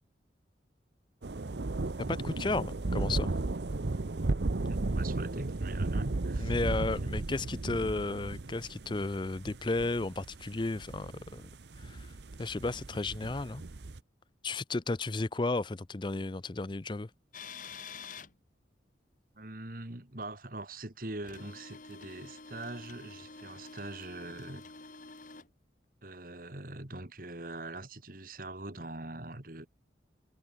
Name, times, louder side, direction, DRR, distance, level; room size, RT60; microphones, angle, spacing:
sound 1, 1.2-14.0, right 2 dB, 70° right, 0.8 m, -35 dB
voice 1, 2.0-3.3 6.4-11.4 11.8-12.1 12.4-13.6 14.4-17.1, left 2 dB, 25° left, 0.5 m, -33 dB
voice 2, 4.7-6.5 19.3-24.7 26.0-29.7, right 2 dB, 50° right, 2.2 m, -42 dB
sound 2, 17.3-18.3 21.2-25.5, left 4 dB, 45° left, 2.5 m, -48 dB
head